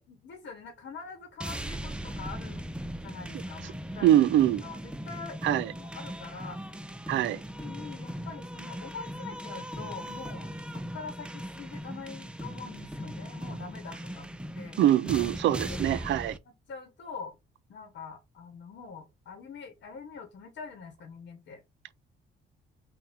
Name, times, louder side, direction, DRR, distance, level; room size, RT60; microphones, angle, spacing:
voice 1, 0.1-2.7 3.0-4.2 4.6-6.6 7.1-7.2 7.6-14.3 14.5-14.8 15.7-16.0 16.4-17.4 17.7-21.6, left 5 dB, 70° left, 1.0 m, -44 dB
sound 1, 1.4-16.4, equal, 5° right, 0.4 m, -39 dB
voice 2, 4.0-4.6 5.4-5.7 7.1-7.4 14.8-16.3, right 12 dB, 70° right, 0.4 m, -23 dB
3.5 x 2.1 x 4.3 m
cardioid pair, 90°, 20 cm